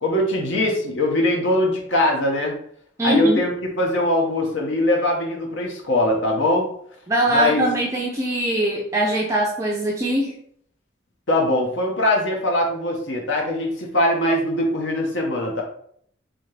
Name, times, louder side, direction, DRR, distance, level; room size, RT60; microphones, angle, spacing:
voice 1, 0.0-2.6 3.0-6.7 7.3-7.6 11.3-15.6, left 1 dB, 70° left, 0 dB, 0.9 m, -21 dB
voice 2, 3.0-3.4 7.1-10.3, right 1 dB, 15° right, -3 dB, 0.4 m, -22 dB
4.0 x 2.9 x 3.2 m, 0.65 s
head